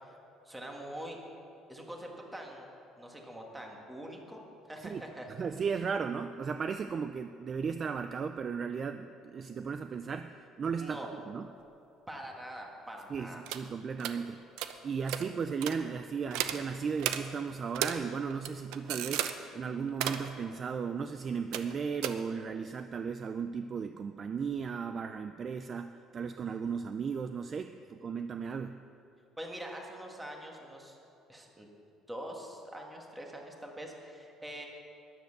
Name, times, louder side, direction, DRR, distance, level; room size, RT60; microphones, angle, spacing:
voice 1, 0.5-1.2 1.7-2.7 3.0-4.4 4.7-5.3 10.8-11.1 12.1-13.4 29.4-31.0 31.3-31.7 32.1-34.7, right 1 dB, 10° right, 1 dB, 1.8 m, -44 dB
voice 2, 5.4-11.0 11.3-11.5 13.1-14.4 14.8-28.8, right 6 dB, 35° right, 8 dB, 0.4 m, -35 dB
sound 1, 13.5-13.6 14.0-14.2 14.6-14.7 15.1-15.2 15.6-15.8 16.3-16.6 17.0-17.2 17.7-18.0 18.3-19.3 19.9-20.3 21.5-21.7 22.0-22.1, right 11 dB, 90° right, 0.7 m, -33 dB
13.0 x 10.5 x 6.6 m, 2.7 s
cardioid pair, 145°, 0 cm